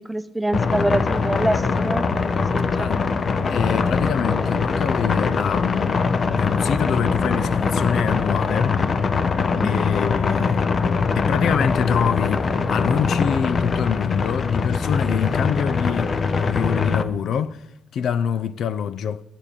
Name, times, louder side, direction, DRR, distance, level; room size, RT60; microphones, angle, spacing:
voice 1, 0.0-3.1 9.6-9.9, right 1 dB, 5° right, 0.7 m, -26 dB
sound 1, 0.5-17.0, left 4 dB, 45° left, 0.8 m, -22 dB
voice 2, 3.5-8.8 9.6-10.6 11.1-17.6 17.9-19.2, left 8 dB, 70° left, 0.4 m, -25 dB
9.8 x 7.4 x 6.7 m
cardioid pair, 90°, 0 cm